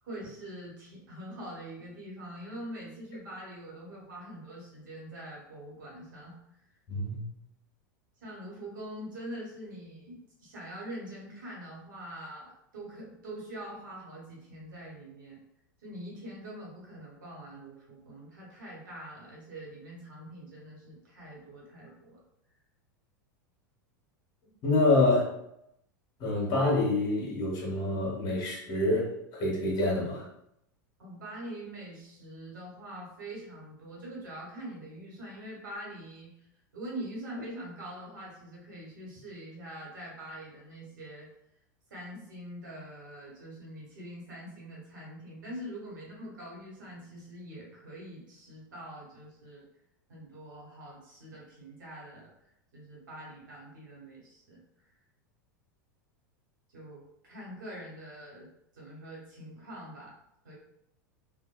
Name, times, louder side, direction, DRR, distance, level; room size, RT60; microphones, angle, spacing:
voice 1, 0.0-6.4 8.2-15.4 15.8-22.2 31.0-41.3 41.9-49.6 50.1-52.3 52.7-54.6 56.7-58.5 58.7-60.1 60.4-60.5, right 1 dB, 80° right, -4 dB, 1.3 m, -44 dB
voice 2, 6.9-7.2 24.6-25.3 26.2-30.2, left 2 dB, 45° left, -3 dB, 1.2 m, -27 dB
2.7 x 2.5 x 2.3 m, 0.79 s
hypercardioid pair, 95°, 10 cm